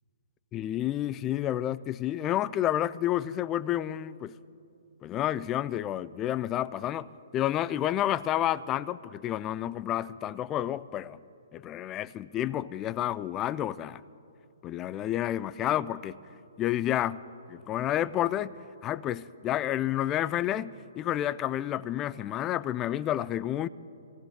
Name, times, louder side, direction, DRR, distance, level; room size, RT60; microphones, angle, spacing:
voice 1, 0.5-4.4 5.0-7.1 7.3-11.2 11.5-14.0 14.6-16.2 16.6-17.2 17.5-23.7, left 12 dB, 25° left, 0.3 m, -30 dB
26.5 x 18.0 x 2.2 m
figure-of-eight pair, 125°, 0 cm